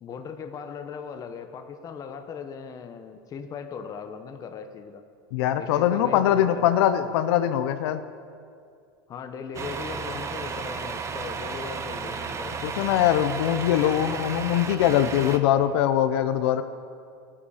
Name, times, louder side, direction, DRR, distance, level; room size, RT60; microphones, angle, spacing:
voice 1, 0.0-5.0 5.6-6.7 9.1-12.7, left 6 dB, 25° left, 7 dB, 0.8 m, -38 dB
voice 2, 5.3-8.0 12.6-16.6, left 11 dB, 75° left, 10 dB, 0.7 m, -22 dB
Truck, 9.5-15.4, right 5 dB, 20° right, 0.6 m, -33 dB
15.5 x 8.6 x 4.9 m, 2.3 s
supercardioid pair, 145°, 14 cm